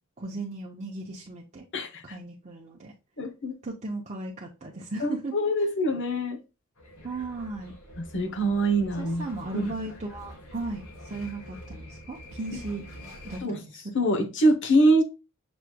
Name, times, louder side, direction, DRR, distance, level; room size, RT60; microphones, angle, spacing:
voice 1, 0.2-1.6 2.0-2.9 3.6-5.7 7.0-7.7 9.0-12.9 13.2-13.8, right 2 dB, 30° right, 0.7 m, -36 dB
voice 2, 3.2-3.5 5.0-6.4 8.1-9.2 9.5-9.7 13.4-13.6 13.9-15.0, right 1 dB, 55° left, 0.9 m, -24 dB
sound 1, 6.8-13.4, equal, 75° left, 1.8 m, -45 dB
6.0 x 3.1 x 2.2 m
head